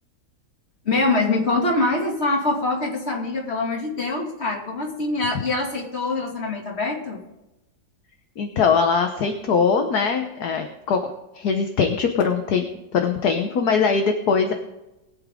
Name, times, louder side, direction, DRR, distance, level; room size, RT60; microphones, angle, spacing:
voice 1, 0.8-7.2, left 2 dB, 35° left, 0 dB, 2.6 m, -24 dB
voice 2, 8.4-12.6 12.9-14.5, left 5 dB, 60° left, 5 dB, 1.5 m, -21 dB
21.5 x 8.3 x 3.7 m, 0.96 s
omnidirectional pair, 2.0 m